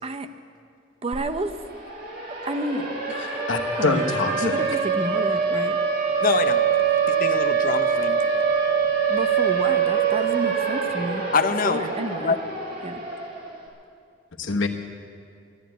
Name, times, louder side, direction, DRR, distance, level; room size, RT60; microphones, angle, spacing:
voice 1, 1.0-1.6 2.4-3.4 3.8-5.8 9.1-11.3 11.6-12.4 12.8-13.0, right 2 dB, 30° right, 8 dB, 0.7 m, -30 dB
Siren, 1.1-1.2 1.5-13.6, right 6 dB, 50° right, 2.4 m, -24 dB
voice 2, 3.2-4.7 14.4-14.7, left 3 dB, 90° left, 4 dB, 1.1 m, -25 dB
voice 3, 6.2-6.6 7.1-8.2 11.3-11.8 12.2-12.4, left 5 dB, 50° left, 9 dB, 0.7 m, -24 dB
12.5 x 11.5 x 9.2 m, 2.4 s
head